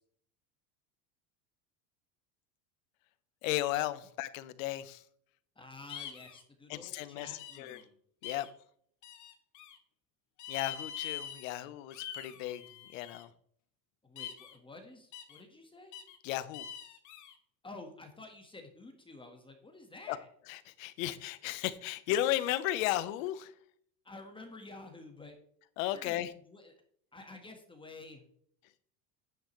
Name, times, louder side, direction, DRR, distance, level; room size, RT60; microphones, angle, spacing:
voice 1, 3.4-5.0 6.7-7.8 8.2-8.5 10.5-12.6 12.9-13.3 16.2-16.7 20.1-20.2 20.5-23.5 25.8-26.3, left 14 dB, 80° left, 14 dB, 1.0 m, -35 dB
voice 2, 5.5-8.0 14.0-15.9 17.6-20.3 24.0-25.4 25.9-26.7 27.1-28.2, left 2 dB, 15° left, 4 dB, 1.5 m, -50 dB
sound 1, 5.9-6.4 7.4-7.8 8.2-8.5 9.0-9.8 10.4-11.6 11.9-13.2 14.2-14.6 15.1-15.4 15.9-16.2 16.5-17.3, left 9 dB, 50° left, 1.7 m, -44 dB
10.0 x 8.8 x 3.2 m, 0.63 s
supercardioid pair, 125°, 39 cm